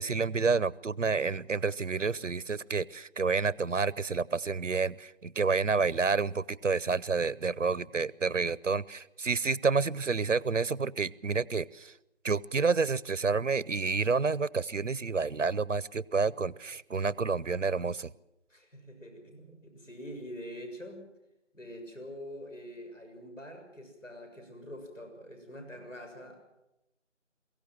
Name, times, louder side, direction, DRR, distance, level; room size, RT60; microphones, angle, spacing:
voice 1, 0.0-11.9 12.2-18.1, right 4 dB, 80° right, 22 dB, 0.8 m, -29 dB
voice 2, 18.5-21.0 21.5-26.4, equal, 85° left, 4 dB, 7.1 m, -45 dB
23.0 x 16.0 x 7.6 m, 0.89 s
figure-of-eight pair, 165°, 37 cm